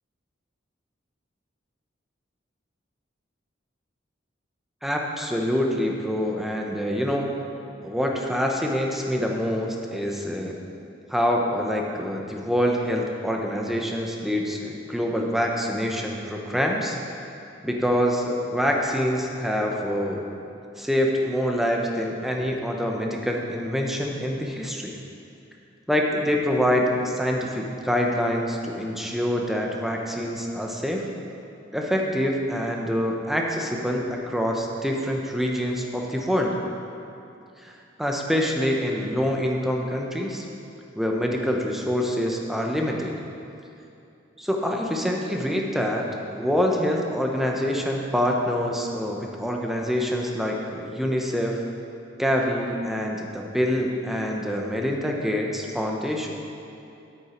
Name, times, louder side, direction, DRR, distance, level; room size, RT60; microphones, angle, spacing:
voice 1, 4.8-7.3 7.8-10.5 11.1-17.0 17.6-20.2 20.8-24.9 25.9-31.0 31.7-36.5 37.6-37.7 38.0-40.4 41.0-43.1 44.4-46.1 46.3-51.6 52.2-56.3, equal, ahead, 0 dB, 0.9 m, -25 dB
9.9 x 8.9 x 4.5 m, 2.7 s
head